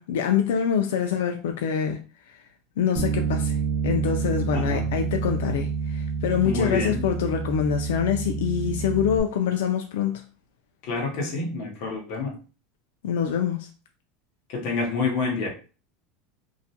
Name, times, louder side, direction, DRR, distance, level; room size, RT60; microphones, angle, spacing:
voice 1, 0.0-2.0 2.3-2.4 2.8-3.6 3.8-10.2 13.0-13.7, left 8 dB, 90° left, 4 dB, 0.3 m, -25 dB
Bass guitar, 3.0-9.2, right 5 dB, 45° right, 0.4 m, -28 dB
voice 2, 4.5-4.9 6.4-7.0 10.9-12.4 14.5-15.5, left 3 dB, 50° left, 0 dB, 0.8 m, -28 dB
2.3 x 2.1 x 2.7 m, 0.36 s
supercardioid pair, 170°, 0 cm